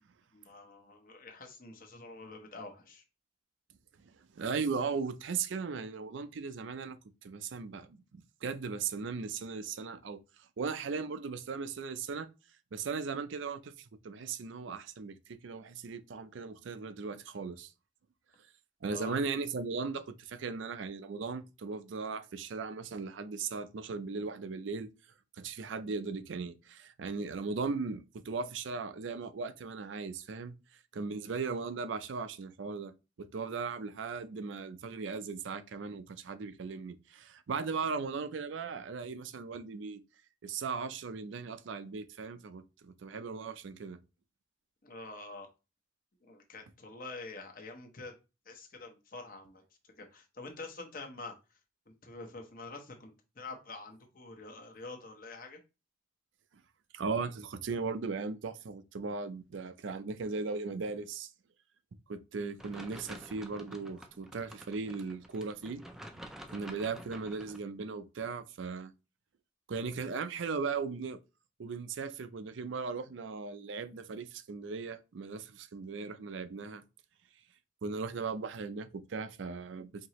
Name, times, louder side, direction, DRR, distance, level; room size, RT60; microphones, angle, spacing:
voice 1, 0.3-3.0 18.9-19.2 44.8-45.5 46.2-48.1 48.5-49.6 50.0-51.3 51.9-55.6 62.3-62.5, left 3 dB, 45° left, 0.8 m, -46 dB
voice 2, 4.4-10.2 10.6-12.3 12.7-13.7 14.0-17.7 18.8-24.9 25.4-30.5 30.9-32.9 33.2-40.0 40.4-44.0 56.9-61.3 62.1-65.8 66.5-68.9 69.7-71.2 71.6-76.8 77.8-80.1, right 4 dB, 80° right, 0.4 m, -37 dB
sound 1, 62.6-67.6, equal, ahead, 0.3 m, -49 dB
4.5 x 2.8 x 2.9 m
head